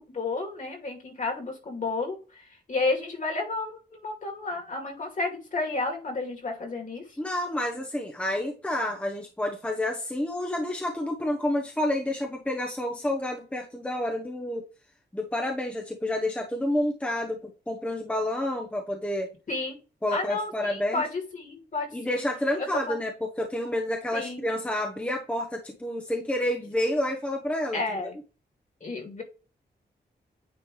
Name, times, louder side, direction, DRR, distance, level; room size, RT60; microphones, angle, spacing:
voice 1, 0.1-7.0 19.5-19.8 20.1-22.2 22.6-23.0 24.1-24.5 27.7-28.2 28.8-29.2, left 3 dB, 50° left, 2 dB, 2.4 m, -31 dB
voice 2, 7.2-14.6 15.1-19.3 20.0-21.0 21.9-23.1 23.4-28.1, left 1 dB, 5° left, 0 dB, 0.9 m, -29 dB
9.3 x 3.2 x 3.2 m, 0.33 s
wide cardioid pair, 145°, 17 cm